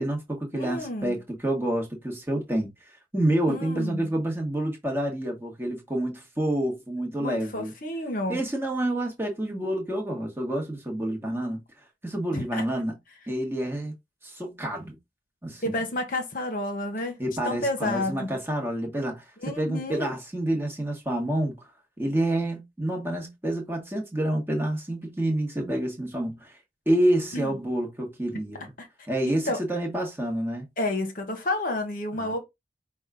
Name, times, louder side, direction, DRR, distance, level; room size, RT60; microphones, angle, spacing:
voice 1, 0.0-7.7 8.3-11.6 12.0-12.9 13.3-13.9 14.2-15.0 15.4-15.8 17.2-21.6 22.0-26.6 26.9-28.7 29.1-30.7 32.1-32.4, right 1 dB, 10° right, 1.2 m, -28 dB
voice 2, 0.5-1.1 3.5-4.1 7.2-8.4 12.3-12.6 15.6-17.2 17.4-18.4 19.4-20.1 27.3-27.5 28.8-28.9 29.3-29.6 30.8-32.4, left 1 dB, 45° left, 1.0 m, -30 dB
5.2 x 2.3 x 3.6 m
head